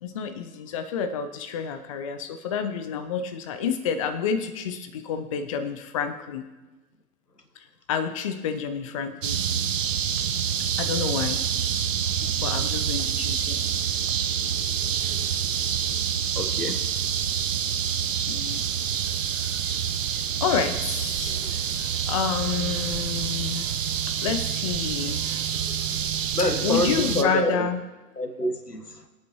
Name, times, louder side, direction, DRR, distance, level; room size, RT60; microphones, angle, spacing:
voice 1, 0.0-6.4 7.9-9.4 10.8-11.4 12.2-13.6 18.3-18.6 19.4-19.6 20.4-23.7 24.2-25.5 26.6-27.8, left 7 dB, 25° left, 9 dB, 0.5 m, -29 dB
sound 1, 9.2-27.2, right 8 dB, 55° right, 0.9 m, -27 dB
voice 2, 16.4-16.9 26.3-27.7 28.2-29.0, left 1 dB, 90° left, 8 dB, 1.4 m, -26 dB
24.0 x 8.7 x 3.1 m, 1.2 s
figure-of-eight pair, 115°, 46 cm